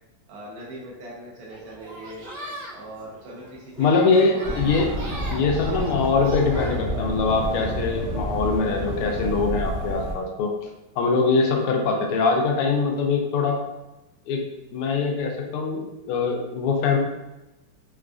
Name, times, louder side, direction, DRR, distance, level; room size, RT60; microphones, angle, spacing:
voice 1, 0.3-2.3 2.7-4.7 5.6-5.8, right 1 dB, 85° right, -5 dB, 1.6 m, -41 dB
sound 1, 1.5-7.8, right 1 dB, 70° right, 1.5 m, -41 dB
voice 2, 3.8-4.9 5.3-10.5 11.0-13.6 14.3-14.4 14.7-17.0, left 4 dB, 85° left, 1 dB, 1.5 m, -23 dB
sound 2, 4.4-10.1, equal, 50° right, 0.8 m, -29 dB
4.6 x 2.3 x 2.4 m, 1.0 s
omnidirectional pair, 2.4 m